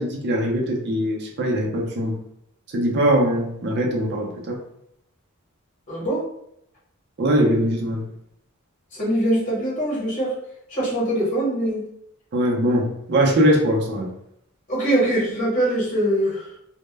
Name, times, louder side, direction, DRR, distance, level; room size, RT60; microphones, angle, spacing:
voice 1, 0.0-2.1 2.7-4.5 7.2-8.0 12.3-14.1, equal, 50° right, 0 dB, 0.5 m, -21 dB
voice 2, 5.9-6.2 8.9-10.4 10.7-11.9 14.7-16.5, right 1 dB, 35° left, -6 dB, 0.9 m, -23 dB
2.0 x 2.0 x 3.2 m, 0.74 s
head